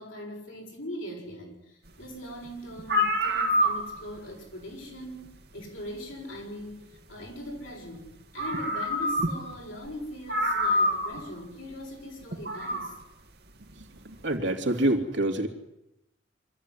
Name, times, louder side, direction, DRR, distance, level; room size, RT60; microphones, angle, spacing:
voice 1, 0.0-13.0, equal, 85° left, 0 dB, 7.2 m, -41 dB
sound 1, 2.5-2.6 2.8-4.2 5.6-5.7 7.9-8.0 8.4-9.6 9.9-10.0 10.3-11.3 12.3-12.9, equal, 55° right, 2.4 m, -26 dB
voice 2, 14.2-15.5, right 1 dB, 70° right, 4 dB, 2.9 m, -25 dB
25.0 x 14.0 x 10.0 m, 0.89 s
head